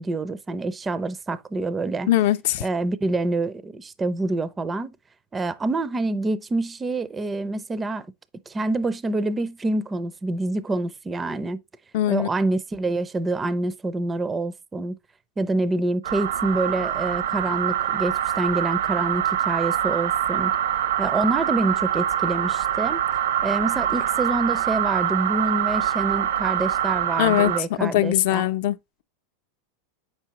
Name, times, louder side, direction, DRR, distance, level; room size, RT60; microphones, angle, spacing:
voice 1, 0.0-2.1 2.6-5.0 5.3-8.1 8.5-11.6 12.1-14.9 15.4-20.5 21.0-23.0 23.4-28.5, right 2 dB, 10° right, 0.4 m, -26 dB
voice 2, 2.1-2.6 11.9-12.3 27.2-27.5 27.8-29.0, left 13 dB, 60° left, 0.5 m, -21 dB
sound 1, 16.0-27.6, right 10 dB, 85° right, 0.8 m, -24 dB
7.8 x 5.7 x 2.9 m
supercardioid pair, 165°, 0 cm